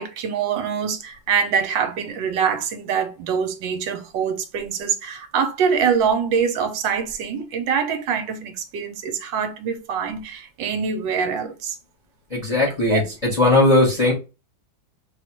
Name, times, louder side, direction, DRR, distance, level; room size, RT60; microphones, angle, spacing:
voice 1, 0.0-11.8 12.9-13.0, right 6 dB, 70° right, 1.4 m, -24 dB
voice 2, 12.3-14.1, left 2 dB, 25° left, 1.0 m, -18 dB
4.1 x 2.4 x 4.4 m
omnidirectional pair, 2.2 m